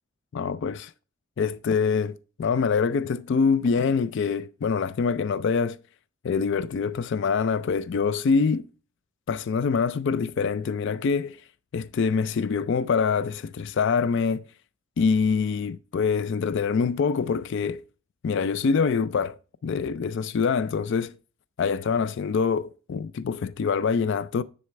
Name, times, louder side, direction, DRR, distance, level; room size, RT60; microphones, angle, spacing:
voice 1, 0.3-0.9 1.4-5.8 6.2-8.7 9.3-11.4 11.7-14.4 15.0-17.8 18.2-19.4 19.6-21.2 21.6-24.4, left 5 dB, 55° left, 0.3 m, -25 dB
9.6 x 4.2 x 4.5 m
head